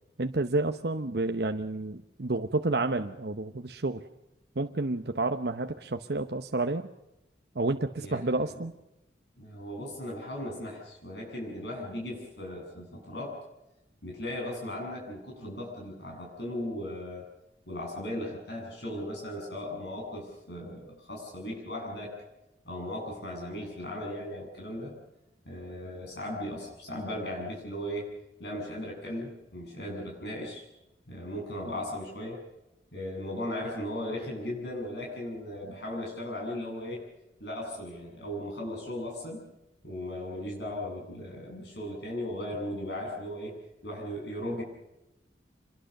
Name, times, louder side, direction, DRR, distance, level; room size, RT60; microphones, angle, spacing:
voice 1, 0.2-4.0 4.6-6.9 7.5-8.7, right 2 dB, 65° right, 6 dB, 0.9 m, -30 dB
voice 2, 9.4-13.4 14.0-17.2 17.7-22.1 22.7-24.9 25.4-28.1 28.4-30.7 31.1-32.4 32.9-37.0 37.4-39.4 39.8-43.5 43.8-44.6, left 1 dB, 70° left, -1 dB, 8.0 m, -37 dB
26.5 x 22.0 x 6.7 m, 0.94 s
head